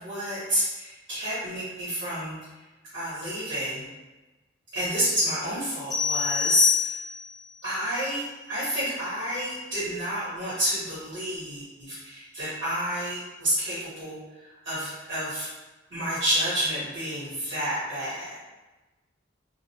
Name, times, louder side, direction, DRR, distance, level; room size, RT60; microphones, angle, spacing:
voice 1, 0.0-2.6 2.9-3.9 4.7-7.0 7.6-15.5 15.9-18.4, equal, 65° right, -12 dB, 1.1 m, -29 dB
sound 1, 5.9-7.4, left 7 dB, 20° left, 0.7 m, -26 dB
2.3 x 2.1 x 2.7 m, 1.1 s
head